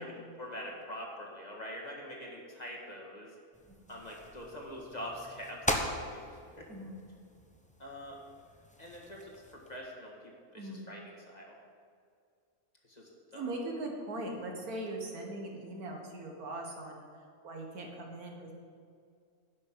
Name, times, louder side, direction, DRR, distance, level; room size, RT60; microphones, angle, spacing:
voice 1, 0.0-3.3 3.9-6.7 7.8-8.2 8.8-10.2 10.5-11.6 12.8-13.5, equal, 30° left, -2 dB, 1.8 m, -44 dB
sound 1, 3.5-9.8, left 1 dB, 5° left, 0.7 m, -40 dB
voice 2, 3.7-4.0 6.7-7.0 10.5-10.8 13.3-18.6, right 1 dB, 80° right, 1 dB, 2.1 m, -40 dB
10.5 x 6.5 x 8.5 m, 2.3 s
omnidirectional pair, 1.5 m